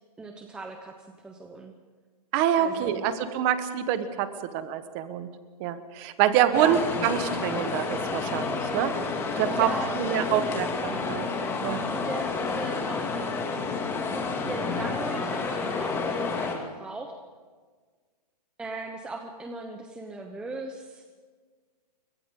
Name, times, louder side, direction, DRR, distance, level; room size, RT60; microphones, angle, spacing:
voice 1, 0.2-0.9 1.2-1.7 2.6-3.0 6.5-6.8 9.4-10.5 11.9-13.2 13.5-13.6 14.1-17.1 18.6-21.0, right 3 dB, 5° right, 3 dB, 0.9 m, -38 dB
voice 2, 2.3-5.3 5.6-8.9 9.4-9.7 9.9-11.3 11.6-11.9, right 10 dB, 25° right, 10 dB, 1.4 m, -26 dB
sound 1, 6.5-16.6, left 4 dB, 10° left, 2.5 m, -30 dB
29.0 x 24.5 x 3.9 m, 1.5 s
hypercardioid pair, 165°, 21 cm